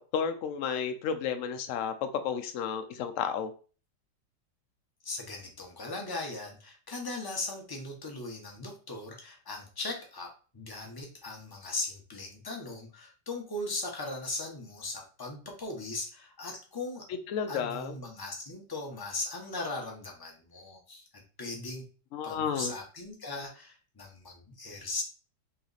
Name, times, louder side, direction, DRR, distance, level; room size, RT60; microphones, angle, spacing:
voice 1, 0.1-3.5 17.1-18.0 22.1-22.7, left 7 dB, 75° left, 8 dB, 0.7 m, -32 dB
voice 2, 5.0-17.0 17.5-21.0 21.4-21.8 22.2-25.0, left 2 dB, 25° left, 0 dB, 0.5 m, -38 dB
3.2 x 3.0 x 3.9 m, 0.37 s
omnidirectional pair, 1.9 m